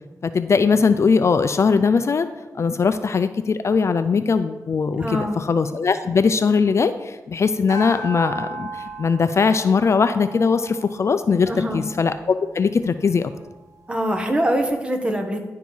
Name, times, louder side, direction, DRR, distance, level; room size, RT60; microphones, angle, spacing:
voice 1, 0.3-2.3 2.6-13.3, left 5 dB, 50° left, 11 dB, 0.4 m, -20 dB
voice 2, 5.0-5.4 11.5-11.8 13.9-15.4, equal, 15° right, 4 dB, 1.3 m, -23 dB
sound 1, 7.7-12.3, right 2 dB, 65° right, 2.1 m, -36 dB
10.5 x 4.6 x 5.4 m, 1.1 s
wide cardioid pair, 95°, 6 cm